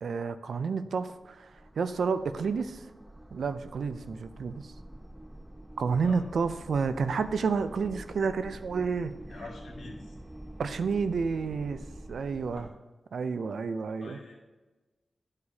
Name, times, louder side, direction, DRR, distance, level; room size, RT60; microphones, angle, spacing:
voice 1, 0.0-2.8 3.3-4.7 5.8-9.2 10.6-11.8 12.1-12.7 13.1-14.2, right 5 dB, 85° right, 11 dB, 0.4 m, -30 dB
sound 1, 0.9-12.7, right 1 dB, 10° right, 0.3 m, -47 dB
voice 2, 9.3-10.1 12.5-12.7 14.0-14.3, left 3 dB, 85° left, -3 dB, 1.7 m, -45 dB
11.5 x 4.8 x 2.7 m, 1.2 s
wide cardioid pair, 75°, 0 cm